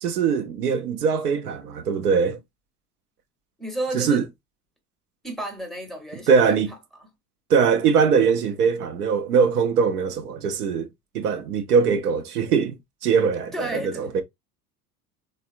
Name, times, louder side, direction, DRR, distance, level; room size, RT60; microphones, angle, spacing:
voice 1, 0.0-2.4 3.9-4.2 6.3-6.7 7.5-10.9 11.1-14.2, right 6 dB, 80° right, 0.6 m, -21 dB
voice 2, 3.6-4.2 5.2-7.1 13.5-14.1, right 1 dB, ahead, 0.7 m, -32 dB
3.3 x 2.0 x 2.3 m
figure-of-eight pair, 70°, 46 cm